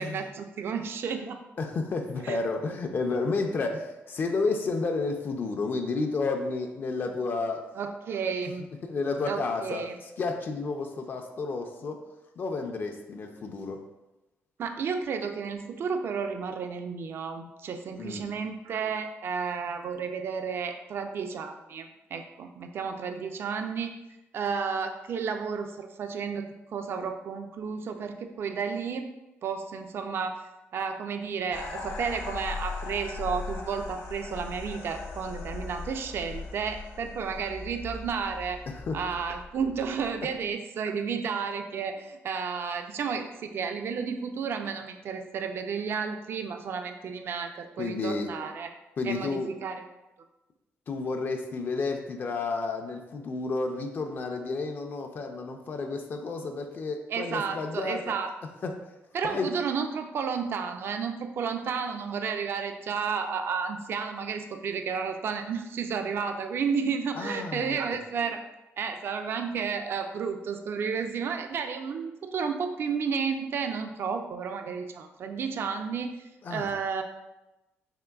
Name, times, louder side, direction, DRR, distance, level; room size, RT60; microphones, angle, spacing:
voice 1, 0.0-1.4 2.2-2.4 7.7-8.7 9.2-9.9 14.6-23.9 24.3-29.1 29.4-30.4 30.7-38.6 38.9-48.7 49.0-49.8 57.1-58.3 59.1-68.4 68.8-76.2 76.5-77.0, right 6 dB, 50° right, 6 dB, 0.3 m, -32 dB
voice 2, 1.6-7.7 8.8-9.9 10.2-12.0 12.4-13.8 18.0-18.3 38.7-39.0 47.8-48.3 49.0-49.5 50.9-58.1 58.6-58.8 59.2-59.5 67.1-67.8 76.4-76.7, left 3 dB, 45° left, 4 dB, 0.4 m, -31 dB
sound 1, 31.5-40.5, left 4 dB, 70° left, 0.7 m, -39 dB
3.7 x 3.6 x 2.3 m, 0.99 s
cardioid pair, 120°, 5 cm